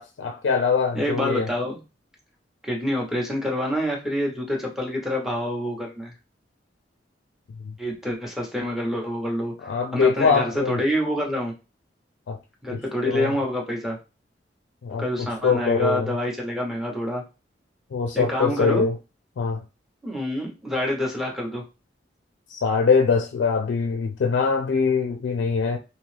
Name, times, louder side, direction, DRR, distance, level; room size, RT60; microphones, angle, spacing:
voice 1, 0.0-1.5 9.6-10.8 12.3-12.4 12.7-12.8 13.1-13.3 14.8-15.0 15.4-16.1 17.9-18.9 19.4-19.6 22.5-25.8, left 5 dB, 90° left, 0.4 m, -22 dB
voice 2, 0.9-1.8 2.6-6.1 7.8-9.5 9.9-11.5 12.6-14.0 15.0-17.2 18.1-18.9 20.0-21.6, left 1 dB, 5° right, 0.8 m, -27 dB
2.7 x 2.3 x 3.1 m
head